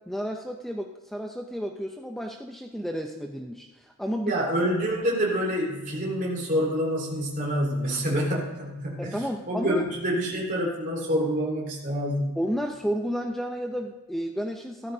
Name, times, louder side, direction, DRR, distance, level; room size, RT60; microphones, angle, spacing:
voice 1, 0.1-4.4 9.0-9.8 12.4-14.9, equal, ahead, 2 dB, 0.5 m, -32 dB
voice 2, 4.2-9.2 9.5-12.3, equal, 40° right, -3 dB, 4.0 m, -27 dB
16.5 x 13.5 x 2.7 m, 1.2 s
head